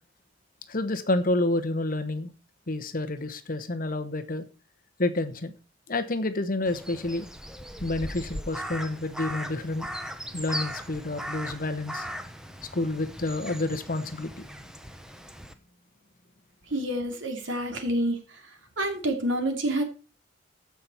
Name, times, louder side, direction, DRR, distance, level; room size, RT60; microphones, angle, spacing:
voice 1, 0.7-2.3 2.7-4.4 5.0-5.5 5.9-7.3 7.8-9.9 10.3-12.1 12.7-14.5, left 2 dB, 45° left, 10 dB, 1.1 m, -29 dB
Crow, 6.7-15.5, equal, 5° right, 0.9 m, -38 dB
voice 2, 16.7-18.4 18.8-19.8, right 1 dB, 70° right, 4 dB, 2.7 m, -28 dB
15.0 x 5.8 x 4.5 m, 0.33 s
head